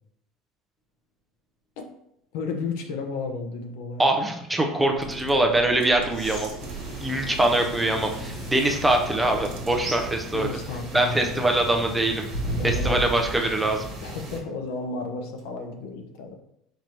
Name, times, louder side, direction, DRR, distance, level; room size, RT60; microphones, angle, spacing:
voice 1, 2.3-4.0 10.3-11.5 12.6-13.1 14.0-16.4, left 4 dB, 70° left, 4 dB, 0.7 m, -33 dB
voice 2, 4.0-6.5 7.0-10.5 10.9-12.2 12.6-13.9, right 1 dB, 5° right, 3 dB, 0.4 m, -23 dB
sound 1, 4.8-10.2, right 3 dB, 85° right, 0.9 m, -39 dB
sound 2, 6.1-8.8 9.5-9.6 12.3-13.5 15.4-15.5, right 2 dB, 35° left, 0.9 m, -34 dB
sound 3, 6.6-14.4, equal, 25° right, 1.3 m, -38 dB
4.6 x 2.6 x 4.4 m, 0.74 s
cardioid pair, 180°, 0 cm